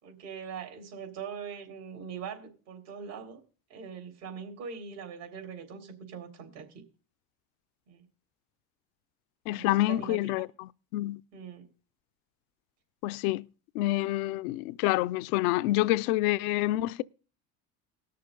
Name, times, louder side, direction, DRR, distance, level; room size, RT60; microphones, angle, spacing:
voice 1, 0.0-3.4 3.7-6.8 7.9-8.1 9.5-10.5 11.3-11.7, right 6 dB, 75° right, 3.6 m, -42 dB
voice 2, 9.5-11.2 13.0-13.5 13.7-17.0, left 17 dB, 85° left, 0.5 m, -28 dB
19.0 x 6.7 x 3.8 m
supercardioid pair, 95°, 41 cm